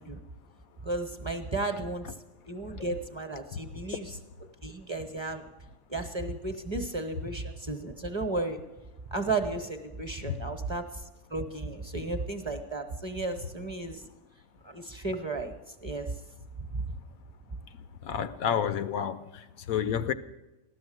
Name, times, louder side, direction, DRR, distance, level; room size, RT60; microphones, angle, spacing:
voice 1, 0.8-2.0 2.5-4.1 4.6-5.4 5.9-8.6 9.1-10.8 11.3-14.0 14.6-15.5 15.8-16.1 16.7-16.8, right 2 dB, 20° right, 0.9 m, -33 dB
voice 2, 18.0-19.4 19.7-20.1, left 8 dB, 85° left, 1.2 m, -30 dB
15.0 x 12.0 x 7.6 m
omnidirectional pair, 1.4 m